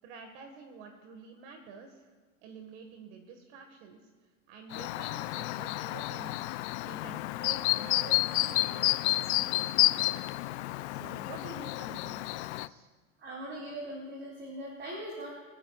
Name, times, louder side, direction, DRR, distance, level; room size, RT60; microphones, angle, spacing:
voice 1, 0.0-2.1 2.4-4.0 4.5-6.5 6.8-10.4 10.9-12.9, right 5 dB, 60° right, 4 dB, 1.8 m, -49 dB
Chirp tweet, 4.7-12.7, left 18 dB, 60° left, 0.5 m, -30 dB
voice 2, 13.2-15.3, right 1 dB, 30° right, -5 dB, 4.5 m, -40 dB
27.0 x 9.9 x 2.4 m, 1.5 s
hypercardioid pair, 120°, 39 cm